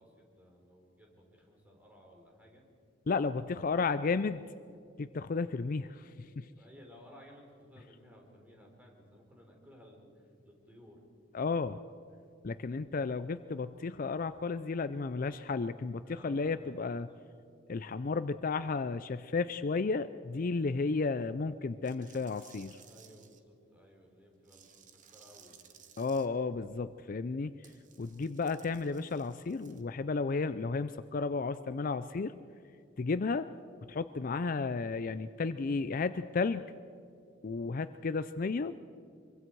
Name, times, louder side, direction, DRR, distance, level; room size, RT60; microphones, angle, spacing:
voice 1, 0.0-2.7 6.6-11.0 15.9-17.2 22.9-25.7, equal, 10° right, -1 dB, 3.9 m, -58 dB
voice 2, 3.1-4.4 5.0-6.5 11.3-11.8 12.4-17.1 17.7-22.8 26.0-27.5 28.0-32.3 33.0-33.5 33.9-36.7 37.4-38.7, left 4 dB, 45° left, 13 dB, 0.4 m, -33 dB
sound 1, 21.8-23.4 24.4-26.3 27.6-29.8, right 8 dB, 40° right, 1.2 m, -59 dB
25.0 x 23.5 x 4.7 m, 2.4 s
head